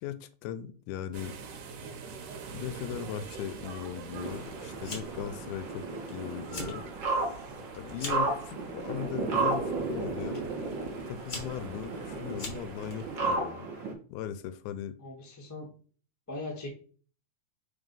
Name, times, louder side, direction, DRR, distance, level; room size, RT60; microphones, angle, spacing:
voice 1, 0.0-1.4 2.5-6.9 7.8-10.4 11.1-13.7 14.1-15.0, left 10 dB, 80° left, 1.9 m, -38 dB
sound 1, 1.1-13.4, right 5 dB, 80° right, 2.4 m, -46 dB
sound 2, 4.1-13.9, right 3 dB, 55° right, 1.3 m, -34 dB
Fire, 4.8-5.3 5.6-6.1 6.4-6.8 7.2-8.3 9.1-9.5 10.3-10.4 11.0-12.9, left 2 dB, 50° left, 0.9 m, -41 dB
voice 2, 15.0-15.7 16.3-16.7, left 2 dB, 15° left, 0.5 m, -39 dB
4.9 x 3.8 x 5.3 m
omnidirectional pair, 3.6 m